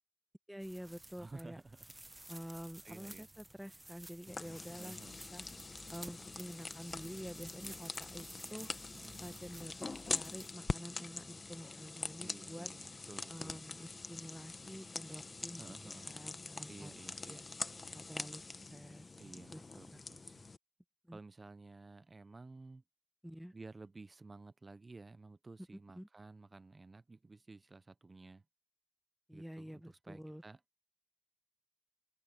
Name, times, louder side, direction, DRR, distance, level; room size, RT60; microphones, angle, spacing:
voice 1, 0.5-1.6 2.3-5.0 5.3-5.5 5.9-8.7 9.2-12.7 13.3-15.7 16.0-17.4 17.9-19.6 19.9-20.0 21.0-21.2 23.2-23.5 25.9-26.1 29.3-30.4, equal, 5° right, 1.1 m, -49 dB
sound 1, 0.6-10.5, right 1 dB, 30° right, 0.9 m, -54 dB
voice 2, 1.2-1.8 2.8-3.3 4.8-5.2 8.9-9.4 12.2-13.6 15.6-16.1 16.7-17.4 19.2-20.5 21.1-22.8 23.5-28.4 29.3-30.6, right 3 dB, 70° right, 0.4 m, -54 dB
sound 2, 4.3-20.6, left 3 dB, 85° left, 0.8 m, -44 dB
wide cardioid pair, 60°, 0 cm